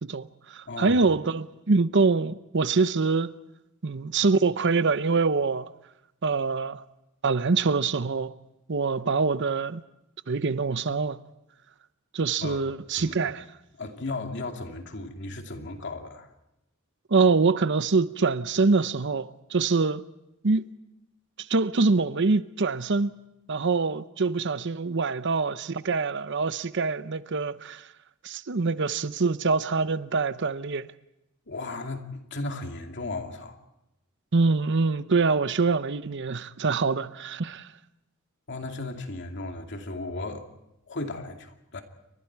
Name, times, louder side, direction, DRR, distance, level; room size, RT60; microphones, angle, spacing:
voice 1, 0.0-3.3 3.8-5.7 6.2-6.8 7.2-8.3 8.7-9.8 10.3-11.2 12.1-13.4 17.1-20.0 20.4-20.6 21.5-23.2 23.5-27.8 28.2-30.9 34.3-37.7, right 4 dB, 60° right, 0.7 m, -24 dB
voice 2, 0.6-1.0 12.4-12.7 12.9-13.2 13.8-16.3 31.5-33.6 38.5-40.5 40.9-41.8, left 2 dB, 55° left, 2.5 m, -35 dB
29.0 x 24.0 x 4.7 m
head